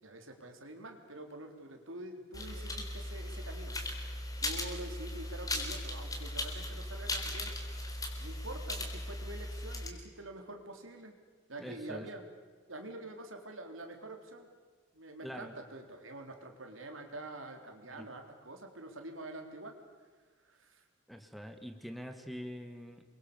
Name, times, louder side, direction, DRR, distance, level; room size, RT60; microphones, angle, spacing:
voice 1, 0.0-11.2 11.5-12.3 12.7-14.5 14.9-19.8 20.4-20.8, right 2 dB, 90° right, 4 dB, 3.8 m, -46 dB
sound 1, 2.3-9.9, left 1 dB, 20° left, 3.8 m, -38 dB
voice 2, 11.6-12.1 15.2-15.5 17.9-18.1 21.1-23.0, equal, ahead, 7 dB, 1.9 m, -44 dB
29.0 x 23.5 x 7.0 m, 1.5 s
head